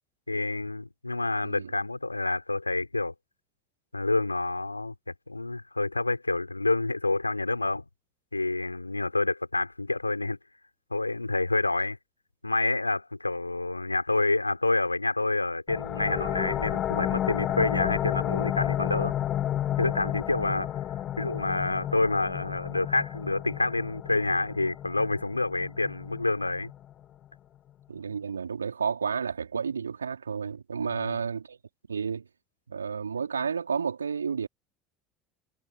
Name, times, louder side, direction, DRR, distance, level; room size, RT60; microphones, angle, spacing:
voice 1, 0.3-3.1 3.9-4.9 5.3-7.8 8.3-10.4 10.9-12.0 12.4-19.1 19.8-20.7 21.2-26.7 30.8-31.2, left 2 dB, 90° left, 5.4 m, -28 dB
sound 1, 15.7-27.0, left 11 dB, 45° left, 3.8 m, -32 dB
voice 2, 27.9-31.6 31.9-32.2 32.7-34.5, right 6 dB, 85° right, 4.4 m, -31 dB
figure-of-eight pair, 65°, 0 cm